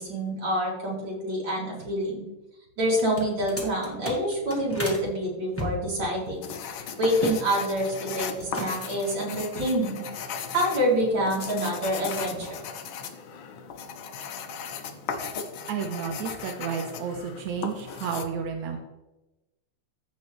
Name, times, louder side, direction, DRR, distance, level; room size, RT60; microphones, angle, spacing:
voice 1, 0.0-2.2 2.8-6.5 7.0-10.1 10.5-12.6, equal, 40° right, -4 dB, 3.2 m, -27 dB
sound 1, 2.9-5.0 5.5-7.4 7.7-8.1 8.4-9.0, left 1 dB, 15° left, 0.4 m, -35 dB
sound 2, 6.4-18.2, left 6 dB, 90° left, 1.1 m, -37 dB
voice 2, 15.7-18.8, right 6 dB, 85° right, 3 dB, 2.3 m, -31 dB
14.5 x 5.4 x 3.2 m, 1.0 s
omnidirectional pair, 3.3 m